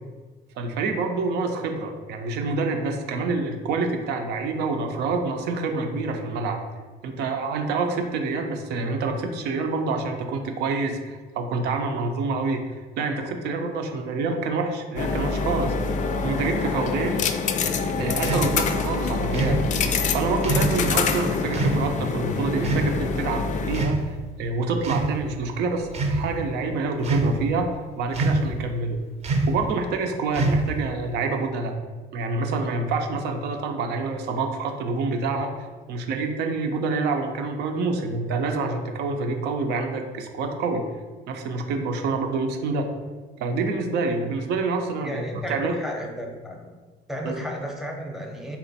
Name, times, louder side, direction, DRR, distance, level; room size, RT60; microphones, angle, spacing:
voice 1, 0.6-6.6 7.0-15.7 16.2-17.3 17.9-27.7 28.0-29.0 29.5-31.7 32.1-40.8 41.3-42.9 43.4-45.8 47.2-47.4, right 3 dB, 75° right, 4 dB, 0.6 m, -27 dB
sound 1, 15.0-23.9, left 4 dB, 45° left, 0.4 m, -26 dB
sound 2, 18.2-18.5 19.3-19.6 20.4-20.8 21.5-21.8 22.6-22.9 23.7-24.3 24.8-25.1 25.8-26.2 27.0-27.5 28.1-28.5 29.2-29.6 30.3-30.8, right 2 dB, 40° right, 0.7 m, -24 dB
voice 2, 45.0-46.7 47.1-48.6, equal, ahead, 0 dB, 0.7 m, -33 dB
4.2 x 2.5 x 4.0 m, 1.3 s
cardioid pair, 110°, 17 cm